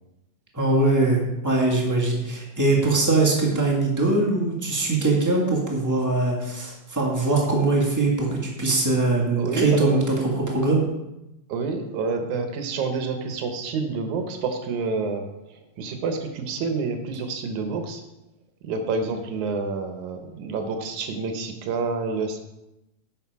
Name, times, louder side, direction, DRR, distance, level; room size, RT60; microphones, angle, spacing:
voice 1, 0.5-10.8, right 2 dB, 15° right, -3 dB, 0.7 m, -22 dB
voice 2, 9.4-10.0 11.5-18.0 18.6-22.4, right 4 dB, 70° right, 6 dB, 2.2 m, -28 dB
9.9 x 6.6 x 4.7 m, 0.93 s
omnidirectional pair, 3.7 m